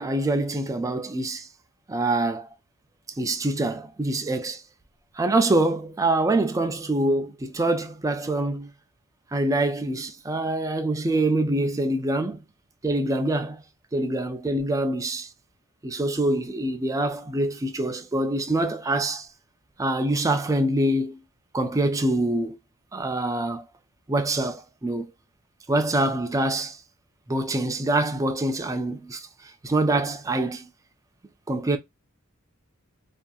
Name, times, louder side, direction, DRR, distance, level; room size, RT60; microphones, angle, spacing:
voice 1, 0.0-1.5 1.9-2.5 3.2-4.6 5.2-8.7 9.3-12.4 12.8-13.6 13.9-15.3 15.8-19.3 19.8-21.2 21.5-22.6 22.9-23.7 24.1-25.1 25.7-26.8 27.3-29.3 29.6-30.7 31.5-31.8, right 2 dB, 15° right, 0.3 m, -25 dB
2.6 x 2.3 x 2.2 m
head